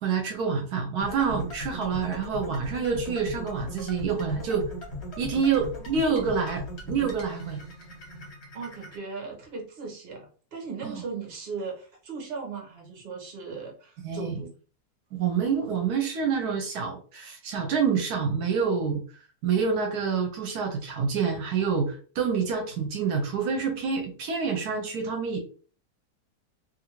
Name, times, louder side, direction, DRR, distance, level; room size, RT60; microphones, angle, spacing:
voice 1, 0.0-4.7 5.2-7.6 10.8-11.0 14.0-14.4 15.1-19.0 19.4-25.4, right 6 dB, 75° right, 3 dB, 1.1 m, -27 dB
sound 1, 1.0-9.0, left 1 dB, 45° left, 1.1 m, -39 dB
voice 2, 8.5-14.5, right 4 dB, 45° right, 0 dB, 1.1 m, -38 dB
2.7 x 2.5 x 2.9 m, 0.40 s
omnidirectional pair, 1.7 m